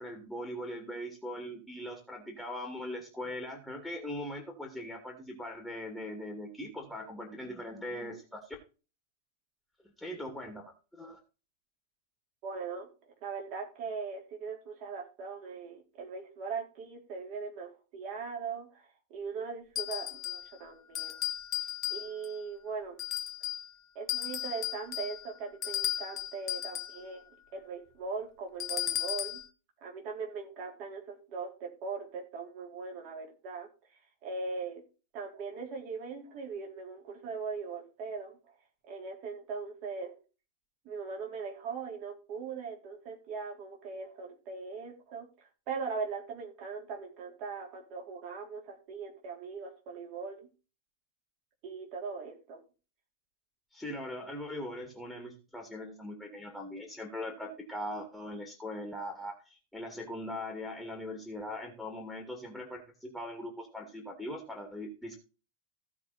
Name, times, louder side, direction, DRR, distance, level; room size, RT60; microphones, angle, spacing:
voice 1, 0.0-8.6 9.8-11.2 53.7-65.2, left 1 dB, ahead, 1 dB, 2.4 m, -40 dB
voice 2, 12.4-12.9 13.2-21.2 21.9-23.0 23.9-29.4 29.8-33.7 34.2-34.8 35.1-38.4 38.9-40.1 40.8-50.5 51.6-52.6, right 5 dB, 45° right, 0 dB, 4.2 m, -40 dB
sound 1, 19.8-20.5 20.9-22.4 23.0-23.7 24.1-27.0 28.6-29.5, left 11 dB, 35° left, 1.2 m, -35 dB
16.0 x 5.5 x 4.2 m, 0.33 s
figure-of-eight pair, 90°, 0 cm